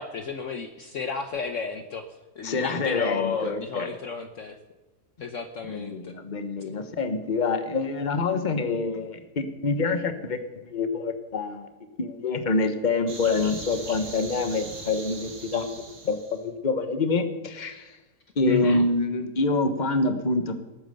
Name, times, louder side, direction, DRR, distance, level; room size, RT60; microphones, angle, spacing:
voice 1, 0.0-2.1 2.4-4.6 5.2-6.1 18.4-18.9, left 5 dB, 55° left, 7 dB, 1.2 m, -32 dB
voice 2, 2.4-3.9 5.7-11.7 12.0-15.7 16.0-17.9 18.4-20.5, left 3 dB, 30° left, 8 dB, 1.2 m, -26 dB
sound 1, 13.1-16.4, right 3 dB, 80° right, 2.7 m, -40 dB
19.0 x 9.1 x 6.8 m, 1.2 s
omnidirectional pair, 1.7 m